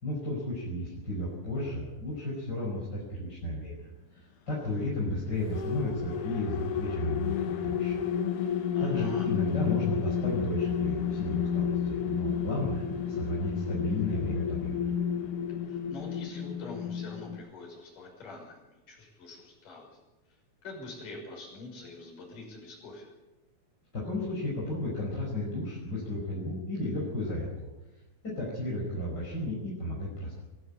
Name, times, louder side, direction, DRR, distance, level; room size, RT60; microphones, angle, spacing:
voice 1, 0.0-3.7 4.1-8.0 8.8-14.9 23.9-27.7 28.2-30.4, left 1 dB, 20° left, -5 dB, 5.4 m, -33 dB
sound 1, 5.2-17.4, left 8 dB, 65° left, 2.0 m, -31 dB
voice 2, 8.7-9.3 15.6-20.0 20.3-23.1, left 2 dB, 40° left, -1 dB, 7.5 m, -45 dB
22.5 x 15.5 x 8.7 m, 1.1 s
omnidirectional pair, 5.8 m